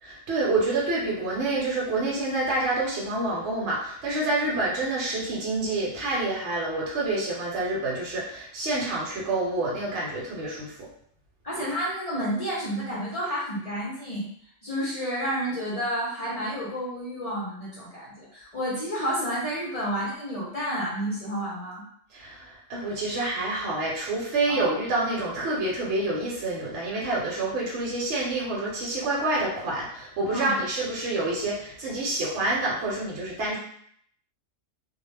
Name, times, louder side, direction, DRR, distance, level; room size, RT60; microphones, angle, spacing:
voice 1, 0.0-10.9 22.1-33.6, right 2 dB, 70° right, -5 dB, 1.0 m, -28 dB
voice 2, 11.4-14.3 14.6-21.8 24.5-24.7 30.3-30.6, equal, 50° left, -7 dB, 0.4 m, -30 dB
2.2 x 2.0 x 3.1 m, 0.66 s
omnidirectional pair, 1.3 m